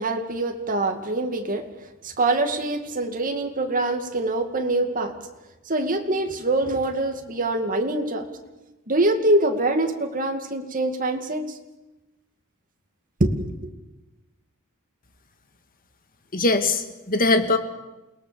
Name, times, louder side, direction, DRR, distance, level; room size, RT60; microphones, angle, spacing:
voice 1, 0.0-1.6 2.0-5.1 5.7-8.3 8.9-11.5 13.2-13.7, right 2 dB, 40° right, 4 dB, 2.3 m, -24 dB
voice 2, 16.3-17.6, left 3 dB, 40° left, 8 dB, 1.9 m, -21 dB
28.5 x 19.5 x 7.0 m, 1.1 s
head